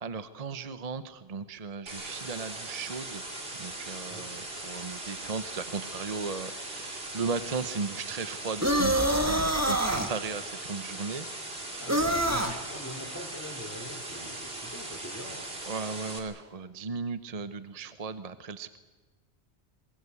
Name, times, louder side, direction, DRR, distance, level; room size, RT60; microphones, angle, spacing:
voice 1, 0.0-3.2 3.6-11.3 15.7-18.8, right 4 dB, 40° right, 12 dB, 0.8 m, -36 dB
sound 1, 1.9-16.2, right 2 dB, 60° right, 3.4 m, -40 dB
sound 2, 8.6-10.1 11.9-12.6, right 1 dB, 15° right, 1.5 m, -25 dB
voice 2, 11.8-15.7, left 1 dB, 15° left, -2 dB, 3.8 m, -43 dB
22.5 x 21.5 x 8.3 m, 1.3 s
omnidirectional pair, 1.1 m